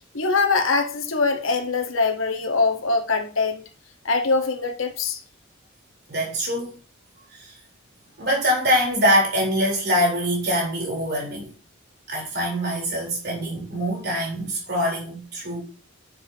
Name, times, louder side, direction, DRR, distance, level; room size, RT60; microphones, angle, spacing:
voice 1, 0.1-3.6 4.0-5.2, left 4 dB, 75° left, 1.5 m, -23 dB
voice 2, 6.1-6.8 7.4-7.5 8.2-11.5 12.1-15.6, equal, 55° right, 4.1 m, -24 dB
10.0 x 7.0 x 2.9 m
head